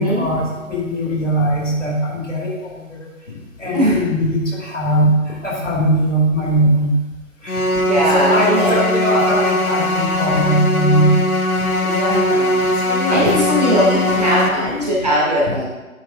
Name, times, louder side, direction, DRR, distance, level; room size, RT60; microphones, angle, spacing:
voice 1, 0.0-3.1 3.6-7.0 7.4-7.6 8.1-11.2 12.8-14.9 15.5-15.6, equal, 55° left, -2 dB, 2.8 m, -20 dB
sound 1, 7.5-14.5, left 1 dB, 80° left, 1.1 m, -19 dB
voice 2, 7.8-8.8 11.8-12.6 13.1-15.6, equal, 30° right, -7 dB, 2.0 m, -19 dB
9.3 x 8.8 x 2.6 m, 1.2 s
figure-of-eight pair, 170°, 43 cm